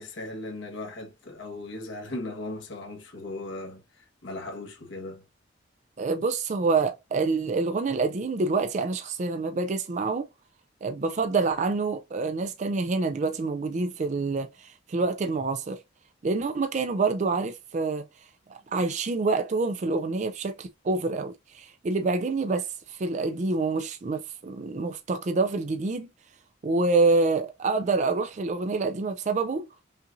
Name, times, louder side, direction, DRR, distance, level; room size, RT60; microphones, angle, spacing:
voice 1, 0.0-3.8 4.2-5.2, left 2 dB, 65° left, 1.3 m, -37 dB
voice 2, 6.0-10.3 10.8-15.8 16.2-18.1 18.5-26.1 26.6-29.7, right 3 dB, 35° right, 0.4 m, -27 dB
5.6 x 2.5 x 2.6 m
head